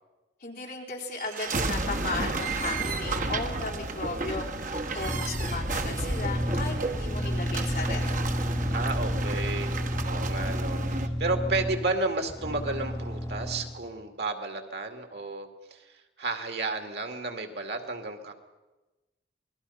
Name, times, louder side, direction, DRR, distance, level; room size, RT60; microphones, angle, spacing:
voice 1, 0.4-8.2, left 3 dB, 50° left, -1 dB, 4.0 m, -36 dB
sound 1, 1.1-11.1, right 2 dB, 50° right, 1.3 m, -32 dB
sound 2, 5.0-13.8, equal, 20° left, 2.5 m, -31 dB
voice 2, 8.7-18.3, right 3 dB, 75° right, 5 dB, 2.4 m, -32 dB
27.0 x 20.0 x 5.7 m, 1.1 s
head